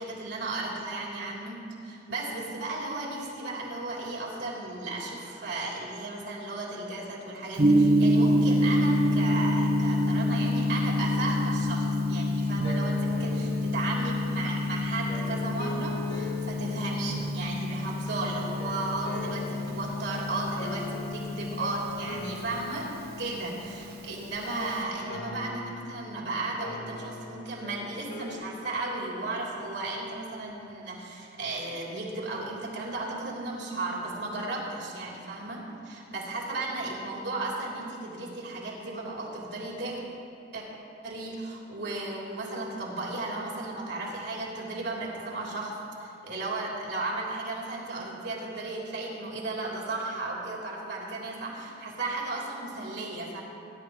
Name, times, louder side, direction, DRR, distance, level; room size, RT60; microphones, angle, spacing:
voice 1, 0.0-22.9 23.2-40.2 40.5-40.6 41.0-53.4, right 2 dB, 75° right, -4 dB, 3.4 m, -35 dB
Gong, 7.6-24.8, left 1 dB, 55° right, 1.0 m, -27 dB
sound 1, 10.8-18.0 18.6-28.4, left 3 dB, 65° left, 1.9 m, -43 dB
22.5 x 11.0 x 3.1 m, 2.7 s
head